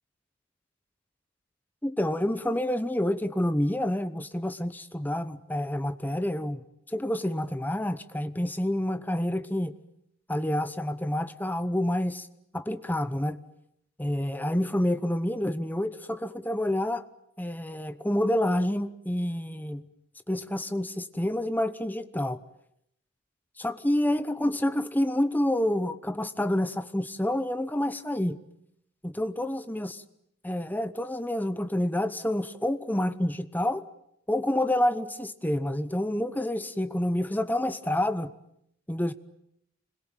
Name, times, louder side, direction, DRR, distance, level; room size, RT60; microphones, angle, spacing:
voice 1, 1.8-6.6 6.9-9.7 10.3-12.3 12.5-13.4 14.0-17.0 17.4-19.8 20.3-22.4 23.6-28.4 29.0-30.0 30.4-33.8 34.3-38.3 38.9-39.1, left 1 dB, 10° left, 1.0 m, -28 dB
26.5 x 21.5 x 9.1 m
head